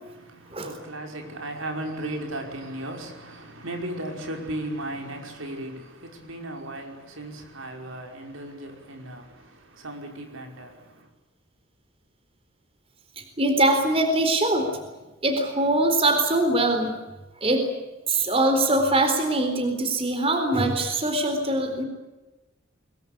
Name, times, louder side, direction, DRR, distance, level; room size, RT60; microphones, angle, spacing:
voice 1, 0.0-11.1, right 1 dB, 75° right, 5.5 m, -36 dB
voice 2, 13.2-14.7 15.2-16.9 17.4-17.7 18.1-21.8, right 2 dB, 30° right, 4.1 m, -22 dB
23.0 x 23.0 x 8.6 m
head